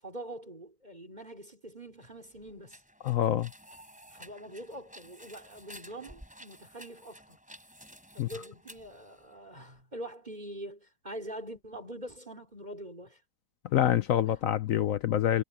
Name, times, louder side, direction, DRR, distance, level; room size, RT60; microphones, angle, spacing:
voice 1, 0.0-2.8 4.1-7.4 8.1-13.2 14.3-14.4, right 1 dB, 20° right, 3.6 m, -44 dB
sound 1, 1.9-9.8, equal, 5° right, 4.1 m, -53 dB
voice 2, 3.0-3.5 8.2-8.3 13.7-15.4, left 11 dB, 70° left, 0.8 m, -26 dB
omnidirectional pair, 2.0 m